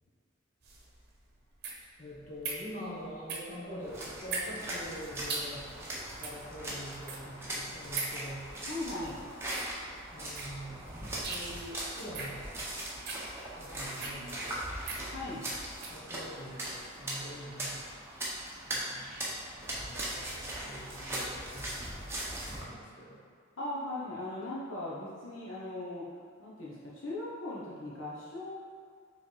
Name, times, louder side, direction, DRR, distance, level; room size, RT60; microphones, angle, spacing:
sound 1, 0.6-16.0, right 4 dB, 55° right, 0.9 m, -42 dB
voice 1, 2.0-5.7 6.2-8.5 10.1-10.8 11.3-12.4 13.5-14.7 15.3-15.5 15.8-17.8 18.7-22.0 22.5-23.2, equal, 40° left, -6 dB, 1.4 m, -45 dB
sound 2, 3.8-22.6, right 1 dB, 15° right, 1.0 m, -40 dB
voice 2, 8.5-9.2 15.1-15.5 23.6-26.1 26.4-28.5, left 1 dB, 75° left, -6 dB, 1.1 m, -39 dB
5.8 x 3.5 x 4.6 m, 2.1 s
head